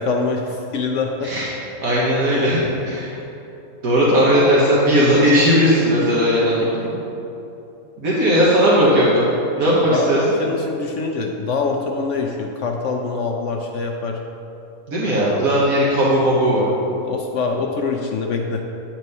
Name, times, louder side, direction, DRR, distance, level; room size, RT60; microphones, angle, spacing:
voice 1, 0.0-1.3 6.0-6.5 6.8-6.9 9.6-14.2 17.1-18.6, left 4 dB, 65° left, 2 dB, 0.8 m, -24 dB
voice 2, 1.8-2.6 2.8-3.2 3.8-7.0 8.0-10.2 14.9-16.7, equal, 70° right, -6 dB, 1.6 m, -17 dB
9.1 x 4.4 x 5.3 m, 2.9 s
omnidirectional pair, 1.5 m